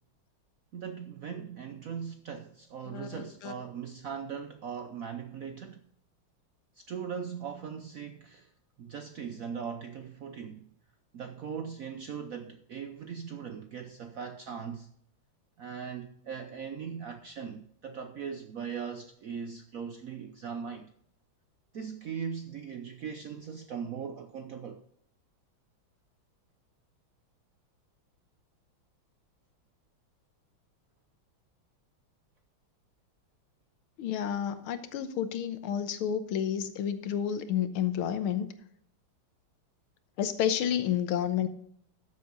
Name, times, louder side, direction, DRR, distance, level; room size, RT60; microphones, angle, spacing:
voice 1, 0.7-5.9 6.7-8.5 8.8-10.7 11.1-14.9 15.6-20.9 21.7-24.8, right 7 dB, 70° right, 0.8 m, -39 dB
voice 2, 2.9-3.5 34.0-38.5 40.2-41.5, left 9 dB, 85° left, 1.8 m, -30 dB
13.5 x 7.6 x 3.8 m
omnidirectional pair, 2.3 m